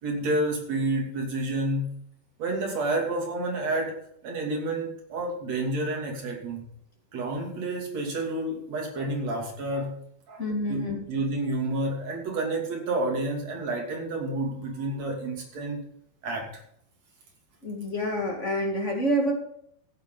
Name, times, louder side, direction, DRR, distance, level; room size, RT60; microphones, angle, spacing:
voice 1, 0.0-1.9 2.4-6.7 7.1-9.9 10.3-15.8 16.2-16.5, right 2 dB, 55° right, 0 dB, 3.9 m, -30 dB
voice 2, 10.4-11.0 17.6-19.3, equal, 25° left, 0 dB, 2.1 m, -27 dB
15.0 x 8.9 x 4.0 m, 0.69 s
omnidirectional pair, 3.8 m